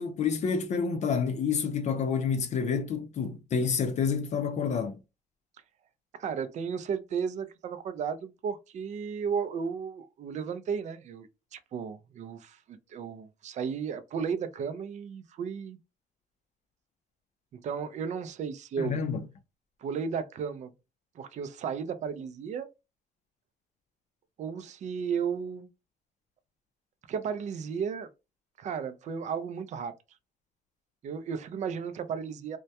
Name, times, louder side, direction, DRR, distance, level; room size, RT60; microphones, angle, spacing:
voice 1, 0.0-5.0 18.8-19.3, left 6 dB, 45° left, 0.4 m, -29 dB
voice 2, 6.2-15.8 17.5-19.0 19.8-20.7 21.2-22.7 24.4-25.7 27.1-28.1 28.6-29.9 31.0-32.6, right 6 dB, 45° right, 0.4 m, -34 dB
2.1 x 2.1 x 2.7 m
cardioid pair, 110°, 17 cm